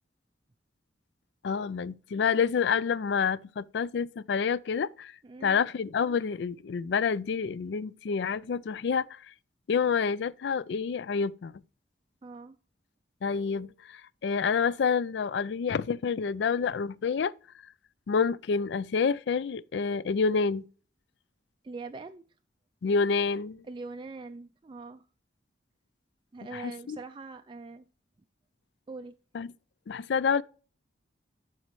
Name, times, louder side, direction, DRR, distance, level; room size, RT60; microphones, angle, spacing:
voice 1, 1.4-5.1 5.4-9.2 9.7-11.5 13.2-17.3 18.1-20.7 22.8-23.6 26.5-27.0 29.3-29.5 29.9-30.4, left 5 dB, 65° left, 0.4 m, -28 dB
voice 2, 5.2-5.7 12.2-12.6 21.6-22.2 23.7-25.1 26.3-27.9 28.9-29.1, right 3 dB, 25° right, 0.3 m, -42 dB
12.0 x 4.3 x 3.1 m
head